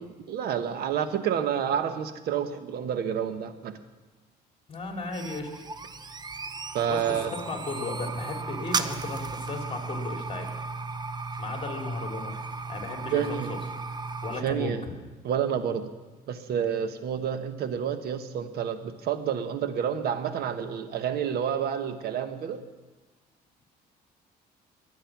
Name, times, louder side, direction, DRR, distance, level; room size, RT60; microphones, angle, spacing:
voice 1, 0.0-3.8 6.7-7.3 13.1-13.5 14.4-14.8 15.2-15.9 16.3-22.6, right 8 dB, 70° right, 10 dB, 1.3 m, -29 dB
voice 2, 4.7-5.6 6.9-10.5 11.4-12.3 12.7-13.6 14.2-14.9, left 3 dB, 35° left, 3 dB, 2.9 m, -35 dB
sound 1, 4.8-14.4, right 4 dB, 25° right, 0.7 m, -35 dB
22.0 x 8.9 x 6.0 m, 1.3 s
cardioid pair, 110°, 17 cm